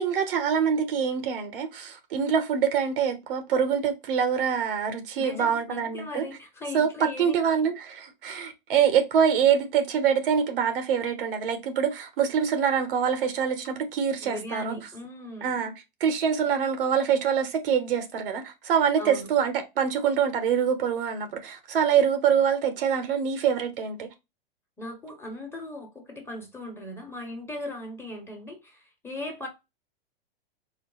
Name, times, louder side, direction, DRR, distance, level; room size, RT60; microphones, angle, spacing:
voice 1, 0.0-6.3 6.7-14.8 15.4-15.7 16.0-24.1, right 7 dB, 70° right, 1.1 m, -25 dB
voice 2, 5.2-7.4 14.2-15.6 19.0-19.3 24.8-29.5, left 1 dB, 10° left, 1.4 m, -38 dB
4.5 x 2.1 x 3.9 m
hypercardioid pair, 120°, 29 cm